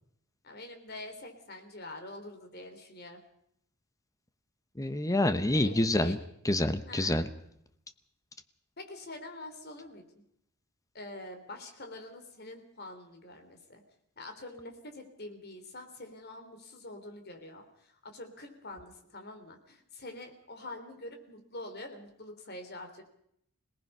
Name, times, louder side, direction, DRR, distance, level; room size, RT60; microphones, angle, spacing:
voice 1, 0.4-3.2 5.5-6.2 6.9-7.3 8.8-10.2 10.9-13.8 14.2-23.0, left 2 dB, 45° left, 5 dB, 3.5 m, -45 dB
voice 2, 4.8-6.2 6.4-7.3, left 1 dB, 15° left, 11 dB, 0.9 m, -27 dB
26.5 x 18.5 x 5.6 m, 0.73 s
head